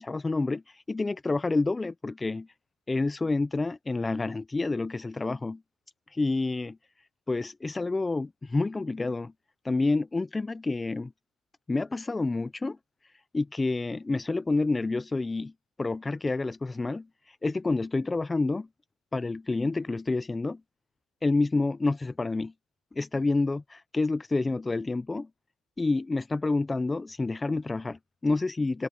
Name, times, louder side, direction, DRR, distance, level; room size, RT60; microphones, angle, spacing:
voice 1, 0.0-2.5 2.9-5.6 6.1-6.8 7.3-9.3 9.6-11.1 11.7-12.8 13.3-15.5 15.8-18.7 19.1-20.6 21.2-22.5 22.9-25.3 25.8-28.9, left 3 dB, 10° left, 0.4 m, -28 dB
cardioid pair, 165°, 0 cm